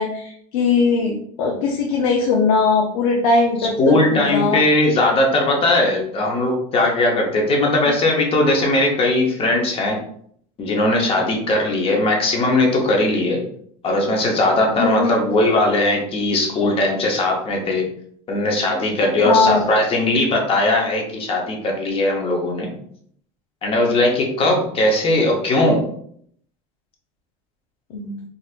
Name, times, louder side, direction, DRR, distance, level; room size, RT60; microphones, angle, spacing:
voice 1, 0.0-4.6 14.8-15.2 19.2-19.6 27.9-28.1, left 4 dB, 90° left, -1 dB, 0.7 m, -19 dB
voice 2, 3.6-10.0 10.6-13.4 13.8-17.9 18.3-22.7 23.6-25.8, left 2 dB, 30° left, 0 dB, 0.9 m, -19 dB
4.0 x 2.5 x 2.5 m, 0.65 s
supercardioid pair, 135°, 18 cm